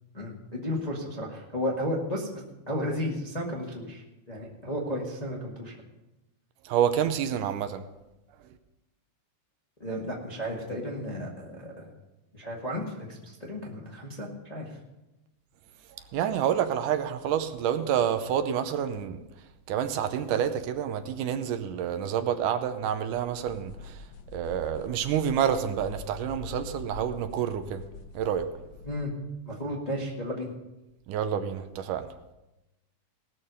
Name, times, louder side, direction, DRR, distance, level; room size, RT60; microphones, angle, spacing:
voice 1, 0.1-5.7 9.8-11.9 12.3-14.7 28.8-29.1 29.4-30.5, equal, 20° left, -3 dB, 1.1 m, -33 dB
voice 2, 6.6-7.8 16.1-19.2 19.7-24.1 24.3-27.8 28.1-28.5 31.1-32.2, right 9 dB, 80° right, 9 dB, 2.3 m, -28 dB
sound 1, 23.1-29.1, left 3 dB, 75° left, 1.6 m, -45 dB
19.0 x 6.6 x 5.4 m, 0.98 s
omnidirectional pair, 3.7 m